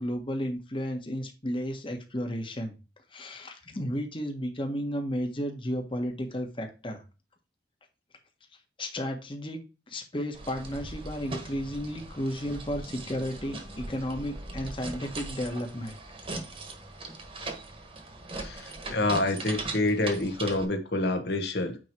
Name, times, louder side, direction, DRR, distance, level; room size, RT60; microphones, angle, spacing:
voice 1, 0.0-2.8 3.1-7.0 8.8-9.6 9.9-16.0, equal, 30° left, 1.4 m, -33 dB
sound 1, 10.3-20.7, right 2 dB, 30° right, 1.4 m, -40 dB
voice 2, 18.4-21.8, left 2 dB, 70° left, 1.4 m, -27 dB
9.2 x 3.2 x 4.5 m
head